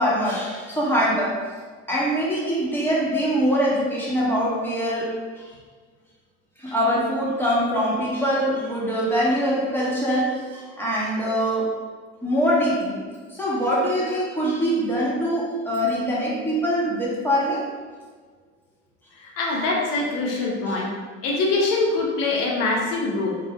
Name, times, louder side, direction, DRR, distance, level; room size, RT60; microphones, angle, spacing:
voice 1, 0.0-1.4 1.9-5.5 6.6-11.8 12.2-13.0 13.3-17.6 20.7-20.8, equal, 5° left, -6 dB, 1.3 m, -23 dB
voice 2, 19.2-20.9 21.2-23.4, left 3 dB, 70° left, -1 dB, 0.9 m, -24 dB
3.8 x 2.5 x 3.0 m, 1.5 s
hypercardioid pair, 80°, 35 cm